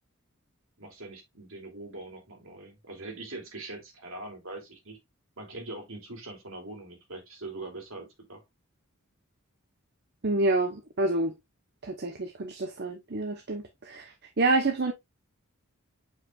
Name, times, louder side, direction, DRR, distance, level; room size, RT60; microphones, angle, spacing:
voice 1, 0.8-5.0 5.4-8.4, right 2 dB, 70° right, 2.8 m, -42 dB
voice 2, 10.2-11.4 11.8-14.9, right 2 dB, 50° right, 0.9 m, -28 dB
8.3 x 4.8 x 2.4 m
head